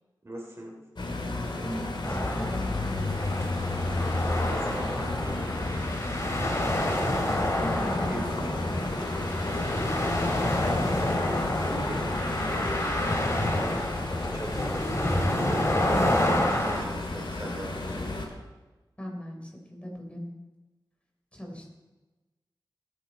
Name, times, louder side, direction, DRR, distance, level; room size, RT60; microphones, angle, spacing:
voice 1, 0.2-0.8 4.4-5.6 7.9-8.3 11.6-12.1 12.4-13.6 14.3-18.1, right 1 dB, 35° right, -1 dB, 3.1 m, -40 dB
sound 1, 1.0-18.3, left 2 dB, 75° left, 2.7 m, -32 dB
voice 2, 1.6-3.6 7.6-8.5 19.0-20.4 21.3-21.6, equal, 15° left, 0 dB, 3.8 m, -39 dB
sound 2, 2.0-16.8, left 1 dB, 35° left, 2.4 m, -29 dB
20.5 x 9.1 x 4.2 m, 1.2 s
wide cardioid pair, 75°, 8 cm